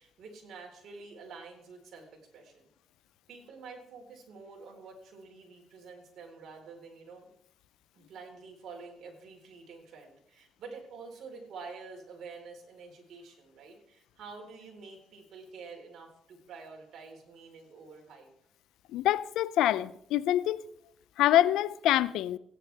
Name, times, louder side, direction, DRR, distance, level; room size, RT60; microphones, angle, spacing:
voice 1, 0.0-2.7 3.3-7.3 7.9-18.3, right 4 dB, 70° right, 4.0 m, -48 dB
voice 2, 18.9-20.6 21.2-22.4, left 13 dB, 90° left, 0.5 m, -25 dB
16.5 x 10.5 x 3.4 m
cardioid pair, 90°, 0 cm